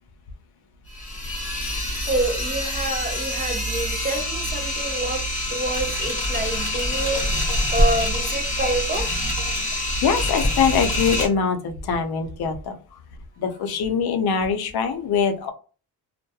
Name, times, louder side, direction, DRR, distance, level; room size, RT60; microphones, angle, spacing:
sound 1, 0.9-11.3, left 1 dB, 20° left, 0.9 m, -25 dB
voice 1, 2.1-5.2 5.5-9.1, right 2 dB, 25° right, 4 dB, 0.4 m, -27 dB
voice 2, 9.7-12.8 13.4-15.5, left 6 dB, 75° left, 7 dB, 0.5 m, -23 dB
2.2 x 2.1 x 2.6 m, 0.37 s
cardioid pair, 110°, 39 cm